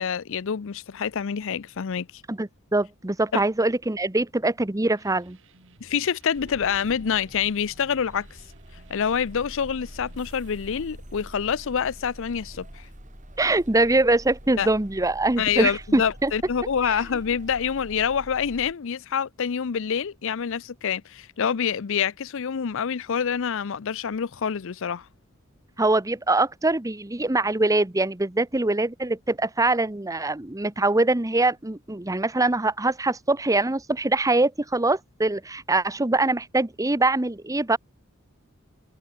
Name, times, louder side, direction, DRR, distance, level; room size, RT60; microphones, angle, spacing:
voice 1, 0.0-2.1 3.3-3.4 5.8-8.3 8.9-12.9 14.6-14.7 15.4-25.1, left 7 dB, 70° left, 0.5 m, -26 dB
voice 2, 2.3-5.4 13.4-16.3 25.8-37.8, right 2 dB, 15° right, 1.0 m, -23 dB
sound 1, 5.0-10.7, right 2 dB, 65° right, 7.9 m, -57 dB
sound 2, 6.3-18.7, equal, 40° right, 6.8 m, -45 dB
head